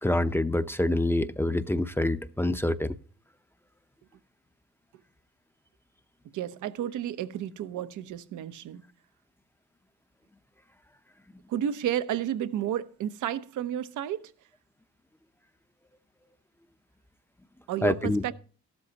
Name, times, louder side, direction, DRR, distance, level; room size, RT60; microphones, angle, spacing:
voice 1, 0.0-2.9 17.8-18.2, left 1 dB, 10° left, 0.6 m, -26 dB
voice 2, 6.3-8.8 11.5-14.3 17.7-18.3, right 10 dB, 80° right, 0.9 m, -31 dB
13.0 x 12.5 x 2.9 m
cardioid pair, 90°, 30 cm